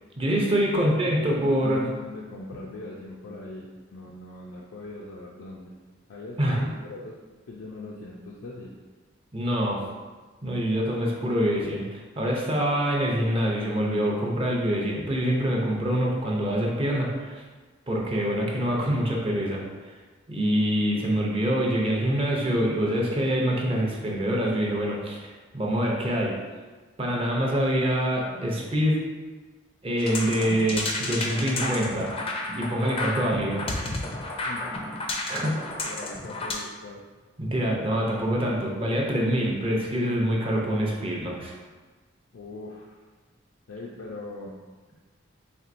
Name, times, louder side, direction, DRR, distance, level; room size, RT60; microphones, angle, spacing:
voice 1, 0.2-1.9 6.4-6.7 9.3-9.8 10.4-17.4 17.9-19.9 20.3-26.3 27.0-29.0 29.8-32.1 32.6-33.7 35.3-35.6 37.4-41.5, equal, 25° right, -2 dB, 0.5 m, -25 dB
voice 2, 1.1-5.7 6.1-7.2 7.5-8.7 34.5-34.7 35.9-37.0 42.3-43.0 43.7-44.6, left 2 dB, 85° left, -3 dB, 0.4 m, -41 dB
sound 1, 30.0-36.5, left 2 dB, 30° left, 0.4 m, -32 dB
4.3 x 3.3 x 2.5 m, 1.3 s
head